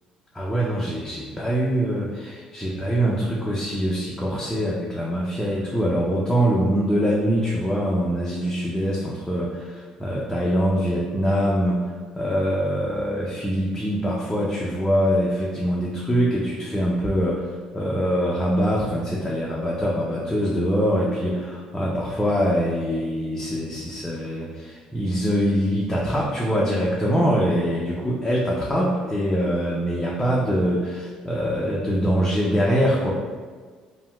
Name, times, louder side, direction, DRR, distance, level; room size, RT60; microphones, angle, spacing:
voice 1, 0.3-11.9 12.2-33.1, equal, 15° left, -4 dB, 0.5 m, -23 dB
2.7 x 2.0 x 3.2 m, 1.5 s
supercardioid pair, 80°, 2 cm